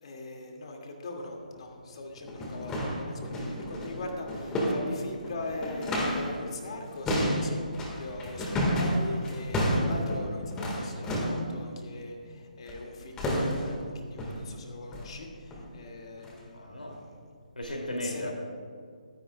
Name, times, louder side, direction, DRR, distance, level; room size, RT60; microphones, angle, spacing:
voice 1, 0.0-7.6 8.0-17.2 18.0-18.3, left 2 dB, 45° left, 1 dB, 2.2 m, -41 dB
sound 1, 1.5-1.6 2.2-6.4 6.6-11.5 12.7-12.9 13.2-13.8 14.2-14.5 14.9-15.1 15.5-15.7 16.2-16.4 16.9-17.0 17.6-17.7, equal, 10° left, 1.7 m, -31 dB
voice 2, 16.5-17.0 17.6-18.3, left 1 dB, 75° left, 0 dB, 2.7 m, -35 dB
23.0 x 10.5 x 2.3 m, 2.2 s
figure-of-eight pair, 145°, 5 cm